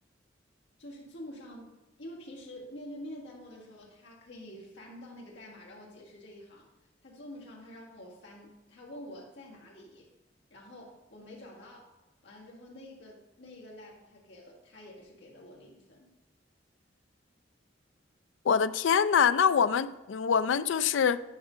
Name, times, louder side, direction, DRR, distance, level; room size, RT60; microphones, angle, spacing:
voice 1, 0.8-1.7 2.0-6.7 7.0-10.1 10.5-11.9 12.2-16.1, left 1 dB, 75° left, -4 dB, 2.0 m, -47 dB
voice 2, 18.5-21.2, left 7 dB, 90° left, 14 dB, 0.4 m, -24 dB
10.0 x 5.3 x 5.1 m, 1.1 s
head